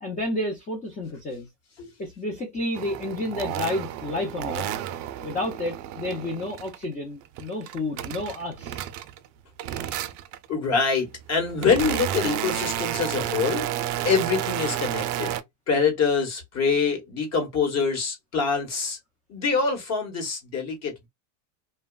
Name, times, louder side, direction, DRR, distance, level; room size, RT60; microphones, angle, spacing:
voice 1, 0.0-1.5 2.0-4.7 5.2-8.8, left 1 dB, 15° left, 0.5 m, -30 dB
sound 1, 2.7-6.8 7.2-9.3 9.6-10.5 11.1-15.4, right 12 dB, 55° right, 0.5 m, -31 dB
voice 2, 10.5-13.7 14.0-15.3 15.7-19.0 19.3-21.1, left 5 dB, 35° left, 1.1 m, -25 dB
3.0 x 2.2 x 2.2 m
cardioid pair, 145°, 46 cm